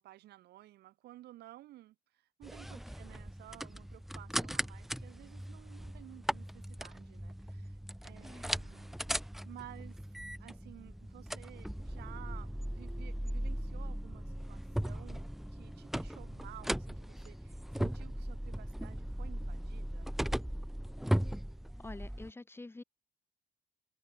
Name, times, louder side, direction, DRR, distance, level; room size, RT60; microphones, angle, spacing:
voice 1, 0.0-9.0 9.2-10.1 10.4-20.1, right 15 dB, 75° right, 5.2 m, -54 dB
sound 1, 2.4-22.3, equal, ahead, 0.5 m, -38 dB
voice 2, 21.8-22.8, left 2 dB, 15° left, 1.9 m, -47 dB
cardioid pair, 110°, 17 cm